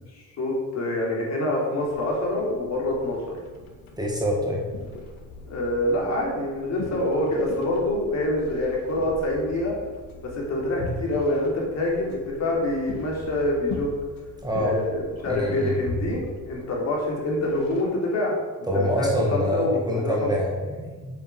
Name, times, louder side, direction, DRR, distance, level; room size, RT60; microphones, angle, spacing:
voice 1, 0.1-3.2 5.5-9.7 10.3-14.0 14.5-18.3 18.6-20.3, left 1 dB, 50° left, -3 dB, 3.8 m, -26 dB
sound 1, 1.8-17.8, left 2 dB, 75° left, 2.2 m, -40 dB
voice 2, 4.0-4.6 14.4-14.8 15.3-15.8 18.7-21.1, left 1 dB, 10° right, -1 dB, 1.7 m, -25 dB
8.6 x 7.1 x 8.1 m, 1.4 s
cardioid pair, 150°, 35 cm